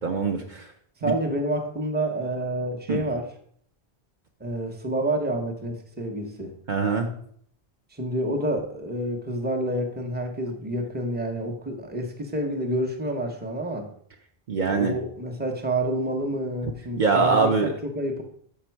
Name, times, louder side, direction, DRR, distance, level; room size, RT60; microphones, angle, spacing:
voice 1, 0.0-0.6 1.0-1.1 2.9-3.0 6.7-7.1 14.5-14.9 17.0-17.7, right 4 dB, 50° right, 2 dB, 0.8 m, -23 dB
voice 2, 1.0-3.3 4.4-6.5 7.9-13.9 14.6-18.2, right 1 dB, 10° right, 3 dB, 0.8 m, -28 dB
6.5 x 5.2 x 4.5 m, 0.63 s
omnidirectional pair, 1.0 m